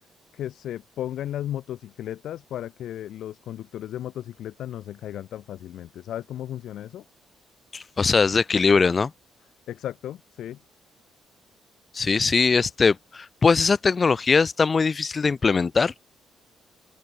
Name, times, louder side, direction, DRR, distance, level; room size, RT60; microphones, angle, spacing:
voice 1, 0.3-7.0 9.7-10.6, left 11 dB, 75° left, 1.7 m, -35 dB
voice 2, 7.7-9.1 11.9-15.9, left 4 dB, 35° left, 0.5 m, -21 dB
open air
cardioid pair, 90°, 0 cm